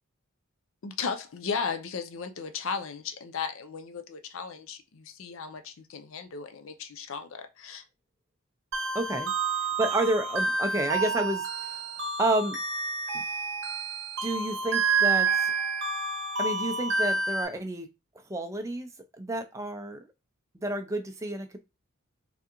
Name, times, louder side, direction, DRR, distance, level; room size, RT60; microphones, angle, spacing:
voice 1, 0.8-7.8, left 5 dB, 65° left, 0.5 m, -35 dB
sound 1, 8.7-17.4, right 4 dB, 55° right, 1.0 m, -29 dB
voice 2, 8.9-9.3 9.8-12.6 13.1-13.2 14.2-15.5 16.4-17.9 18.3-20.0 20.5-21.6, right 1 dB, 15° right, 0.4 m, -30 dB
3.6 x 3.4 x 2.9 m
head